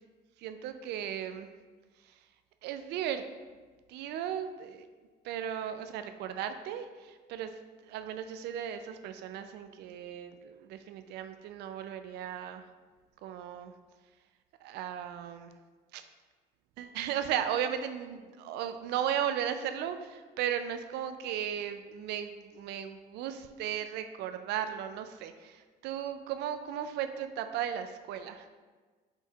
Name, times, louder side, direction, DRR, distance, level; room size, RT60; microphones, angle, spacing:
voice 1, 0.4-1.5 2.0-2.2 2.6-3.2 3.9-4.9 5.2-7.5 7.8-12.7 13.2-13.7 14.6-15.5 15.9-16.0 16.8-28.5, right 9 dB, 80° right, 9 dB, 0.4 m, -36 dB
5.3 x 4.2 x 2.4 m, 1.4 s
cardioid pair, 110°, 17 cm